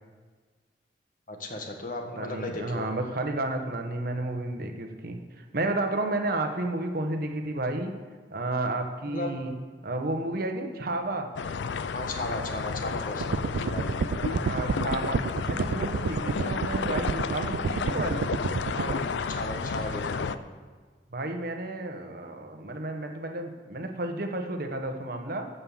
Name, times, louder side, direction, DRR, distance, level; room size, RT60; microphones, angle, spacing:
voice 1, 1.3-2.9 9.1-9.4 11.9-14.0 18.9-20.4, left 1 dB, 50° left, 3 dB, 1.4 m, -35 dB
voice 2, 2.2-8.0 8.3-9.5 9.8-11.3 13.6-15.2 15.5-18.3 18.7-19.0 21.1-25.5, right 2 dB, 55° right, 5 dB, 1.1 m, -32 dB
sound 1, 11.4-20.4, left 5 dB, 90° left, 0.5 m, -32 dB
sound 2, 13.2-18.9, right 5 dB, 80° right, 0.4 m, -30 dB
13.0 x 5.6 x 7.3 m, 1.4 s
head